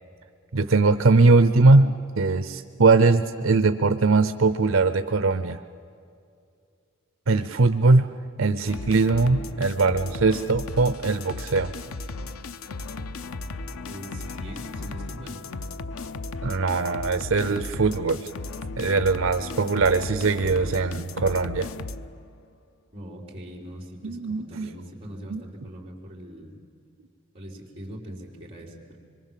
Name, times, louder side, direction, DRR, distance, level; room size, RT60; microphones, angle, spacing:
voice 1, 0.5-5.6 7.3-8.1 8.4-11.7 16.4-18.3 18.8-21.7 24.0-24.7 25.3-25.4, right 3 dB, 75° right, 10 dB, 0.7 m, -21 dB
sound 1, 8.7-22.3, left 3 dB, 85° left, 0.7 m, -36 dB
voice 2, 13.9-15.4 22.9-26.6 27.3-29.0, equal, 30° right, -3 dB, 4.3 m, -41 dB
25.5 x 23.0 x 7.5 m, 2.4 s
head